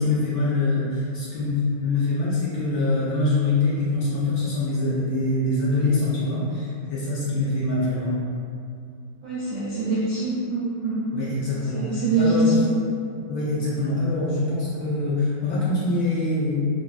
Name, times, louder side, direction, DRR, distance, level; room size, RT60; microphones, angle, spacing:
voice 1, 0.0-8.1 11.1-12.6 13.3-16.7, left 2 dB, 70° left, -8 dB, 1.0 m, -24 dB
voice 2, 9.2-11.0 11.7-12.7, right 2 dB, 75° right, -9 dB, 0.7 m, -23 dB
3.5 x 2.1 x 2.3 m, 2.4 s
omnidirectional pair, 2.0 m